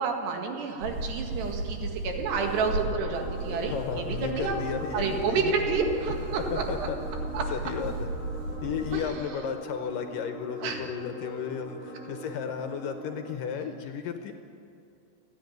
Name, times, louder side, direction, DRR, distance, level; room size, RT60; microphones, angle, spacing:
voice 1, 0.0-4.6 4.9-6.9 7.3-7.4 8.9-9.4 10.6-10.8, right 5 dB, 85° right, 3 dB, 4.0 m, -30 dB
sound 1, 0.8-9.1, right 2 dB, 55° right, 3.1 m, -35 dB
sound 2, 2.3-13.4, right 1 dB, 35° right, 1.4 m, -42 dB
voice 2, 3.7-5.5 6.5-7.0 7.5-8.1 8.6-14.3, left 7 dB, 70° left, 6 dB, 2.3 m, -34 dB
29.5 x 10.5 x 9.4 m, 2.5 s
omnidirectional pair, 4.7 m